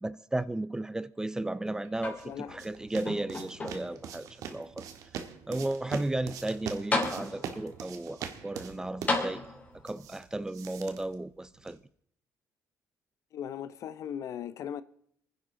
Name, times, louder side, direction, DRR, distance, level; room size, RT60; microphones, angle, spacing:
voice 1, 0.0-4.9 5.5-9.4 9.8-11.8, right 2 dB, 10° right, 0.5 m, -34 dB
sound 1, 1.9-11.9, right 7 dB, 80° right, 1.6 m, -43 dB
sound 2, 2.0-2.7 3.1-4.1 4.8-4.9 6.4-6.5 6.9-7.7 9.1-9.9 11.0-11.1, left 3 dB, 30° left, 3.1 m, -33 dB
voice 2, 2.2-2.5 13.3-14.8, left 9 dB, 65° left, 0.8 m, -38 dB
27.0 x 10.5 x 3.8 m
cardioid pair, 110°, 6 cm